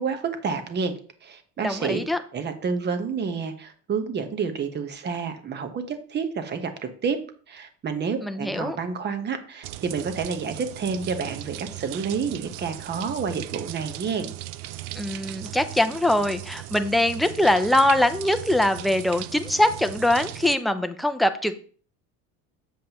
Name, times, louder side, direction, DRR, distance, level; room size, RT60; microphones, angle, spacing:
voice 1, 0.0-2.0 2.3-7.2 7.5-14.3, right 5 dB, 30° right, 8 dB, 1.0 m, -29 dB
voice 2, 1.6-2.2 8.2-8.8 14.9-21.5, left 1 dB, ahead, 8 dB, 0.4 m, -22 dB
sound 1, 9.6-20.6, right 15 dB, 75° right, 0.5 m, -38 dB
7.4 x 7.3 x 2.9 m, 0.43 s
cardioid pair, 135°, 36 cm